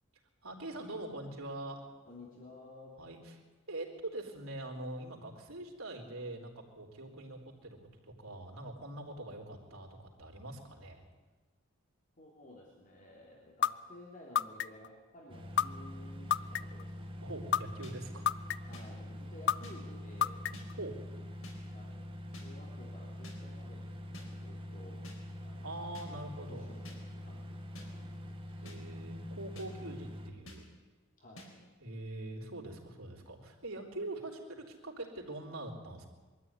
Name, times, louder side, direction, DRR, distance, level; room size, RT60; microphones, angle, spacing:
voice 1, 0.4-1.9 3.0-3.4 3.7-7.8 8.0-11.0 17.2-18.7 20.8-21.0 25.6-26.7 28.6-30.7 31.8-36.1, right 2 dB, 90° right, 1 dB, 3.8 m, -43 dB
voice 2, 2.1-3.0 12.2-17.5 18.7-20.5 21.7-25.1 25.4-25.7 26.1-26.2 26.5-28.7 31.2-31.6, left 1 dB, 40° left, -2 dB, 3.2 m, -54 dB
sound 1, 13.6-13.7 14.4-14.9 15.6-15.7 16.3-16.8 17.5-17.6 18.3-18.8 19.5-19.6 20.2-20.7, left 9 dB, 60° left, 0.5 m, -28 dB
sound 2, 15.3-30.3, left 1 dB, 25° right, 1.7 m, -45 dB
sound 3, 17.8-17.9 18.7-18.8 19.6-19.7 20.5-20.7 21.4-21.6 22.3-22.5 23.2-23.4 24.1-24.3 25.0-25.2 25.9-26.1 26.8-27.0 27.7-27.9 28.6-28.8 29.5-29.7 30.5-30.6 31.4-31.5, left 1 dB, 80° left, 4.6 m, -49 dB
22.5 x 13.5 x 9.7 m, 1.3 s
head